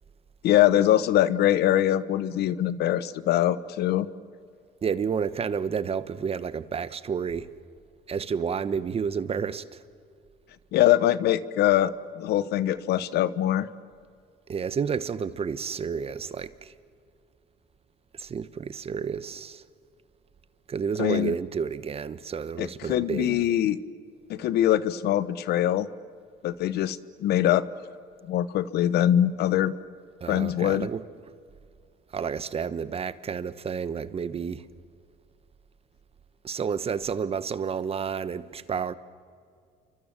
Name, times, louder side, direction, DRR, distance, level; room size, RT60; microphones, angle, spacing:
voice 1, 0.4-4.1 10.7-13.7 21.0-21.3 22.6-23.8 24.3-25.9 26.4-27.6 28.3-29.7 30.3-30.9, left 12 dB, 75° left, 1.0 m, -23 dB
voice 2, 4.8-7.5 8.1-9.8 14.5-16.7 18.1-19.6 20.7-23.5 30.2-31.0 32.1-34.7 36.4-38.9, right 6 dB, 35° right, 1.0 m, -30 dB
29.5 x 24.5 x 7.4 m
cardioid pair, 110°, 17 cm